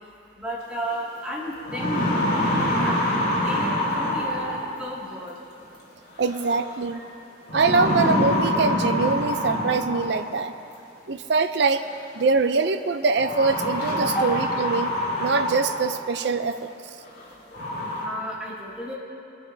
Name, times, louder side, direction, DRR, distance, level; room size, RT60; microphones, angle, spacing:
voice 1, 0.4-3.1 3.4-5.4 6.9-7.0 14.1-14.3 18.0-18.9, right 1 dB, 5° right, -7 dB, 2.1 m, -33 dB
sound 1, 0.9-1.0 1.5-4.9 6.3-6.7 7.5-10.3 11.5-11.6 13.2-16.0 16.5-16.6 17.2-17.3 17.5-18.0, left 1 dB, 50° left, 3.1 m, -25 dB
voice 2, 6.2-7.0 7.5-10.5 11.1-11.8 12.1-14.9 15.2-16.7, right 4 dB, 60° right, 9 dB, 0.5 m, -23 dB
21.0 x 11.0 x 2.7 m, 3.0 s
head